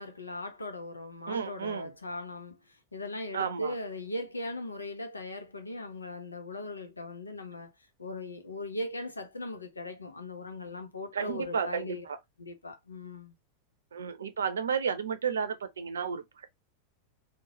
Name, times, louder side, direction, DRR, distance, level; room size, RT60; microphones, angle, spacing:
voice 1, 0.0-7.7 8.0-12.1 12.4-13.3, left 2 dB, 80° left, 0.8 m, -39 dB
voice 2, 1.3-1.9 3.3-3.7 11.1-12.2 13.9-16.4, right 6 dB, 70° right, 0.6 m, -32 dB
3.8 x 2.4 x 2.9 m
figure-of-eight pair, 90°, 0 cm